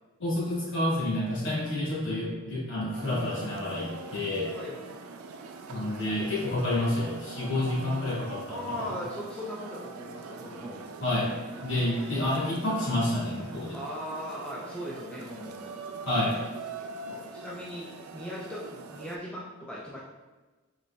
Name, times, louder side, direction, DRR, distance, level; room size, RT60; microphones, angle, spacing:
voice 1, 0.2-4.5 5.7-9.0 11.0-11.3 11.6-13.8 16.0-16.4, left 1 dB, 60° left, -6 dB, 1.2 m, -29 dB
sound 1, 2.9-19.2, right 4 dB, 85° right, 0.3 m, -43 dB
voice 2, 4.5-4.9 8.5-10.9 11.5-11.7 13.7-15.8 17.1-20.0, equal, 5° left, -6 dB, 0.3 m, -39 dB
3.8 x 3.1 x 2.2 m, 1.2 s
head